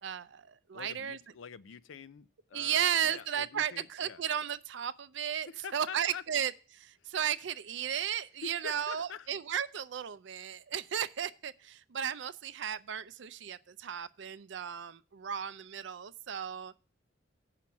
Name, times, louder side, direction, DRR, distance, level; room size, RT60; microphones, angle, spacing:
voice 1, 0.0-1.2 2.5-16.8, right 9 dB, 70° right, 0.4 m, -35 dB
voice 2, 0.7-4.2 5.5-6.2 8.4-9.3, left 6 dB, 80° left, 0.4 m, -46 dB
7.6 x 5.8 x 7.1 m
head